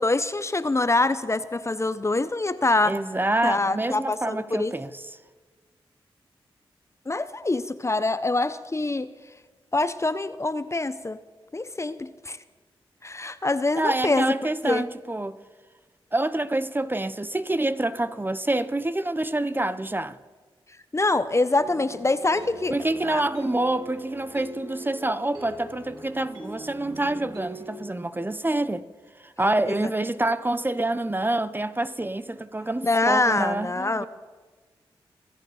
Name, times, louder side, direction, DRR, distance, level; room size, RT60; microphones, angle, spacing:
voice 1, 0.0-3.0 3.4-4.7 7.1-9.1 9.7-11.2 11.5-12.4 13.0-14.3 14.6-14.8 20.9-23.2 29.6-29.9 32.8-34.1, left 2 dB, 30° left, 0.7 m, -25 dB
voice 2, 2.8-4.9 13.8-15.4 16.1-20.2 22.7-28.8 29.2-34.1, right 2 dB, 20° right, 0.7 m, -27 dB
sound 1, 21.6-27.7, right 2 dB, 40° right, 5.1 m, -42 dB
25.0 x 8.5 x 4.9 m
cardioid pair, 45°, 10 cm